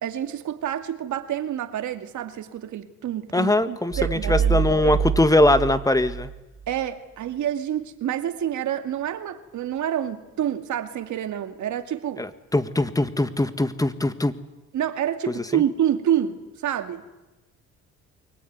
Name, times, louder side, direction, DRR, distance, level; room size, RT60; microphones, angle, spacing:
voice 1, 0.0-5.0 6.7-12.3 14.7-17.0, right 10 dB, 75° right, 2.3 m, -28 dB
voice 2, 3.3-6.3 12.2-14.3 15.5-15.6, left 1 dB, 10° left, 1.8 m, -21 dB
sound 1, 3.9-6.8, right 7 dB, 40° right, 1.5 m, -26 dB
24.0 x 20.0 x 9.6 m
cardioid pair, 90°, 30 cm